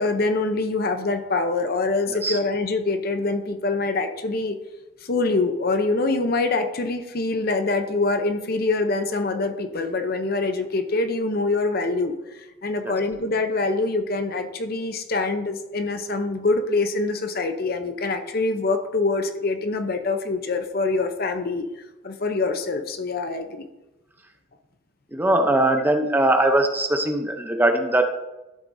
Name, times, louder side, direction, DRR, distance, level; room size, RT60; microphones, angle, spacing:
voice 1, 0.0-4.6 5.0-12.1 12.6-21.7 22.0-23.7, left 3 dB, 45° left, 7 dB, 0.7 m, -24 dB
voice 2, 25.1-28.0, right 1 dB, 10° right, 5 dB, 0.6 m, -20 dB
12.0 x 7.9 x 2.7 m, 0.99 s
head